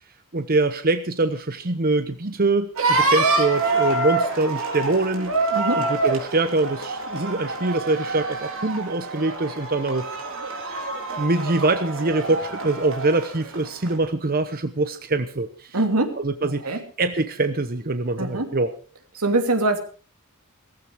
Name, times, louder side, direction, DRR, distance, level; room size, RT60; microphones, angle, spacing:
voice 1, 0.3-5.4 5.8-10.1 11.1-15.8 16.2-18.7, right 2 dB, 45° right, 10 dB, 1.0 m, -24 dB
sound 1, 2.8-14.0, right 3 dB, 65° right, 4.0 m, -26 dB
voice 2, 5.5-5.9 15.7-16.8 18.2-18.5 19.2-19.8, right 2 dB, 85° right, 6 dB, 2.8 m, -23 dB
17.5 x 15.0 x 4.7 m, 0.38 s
head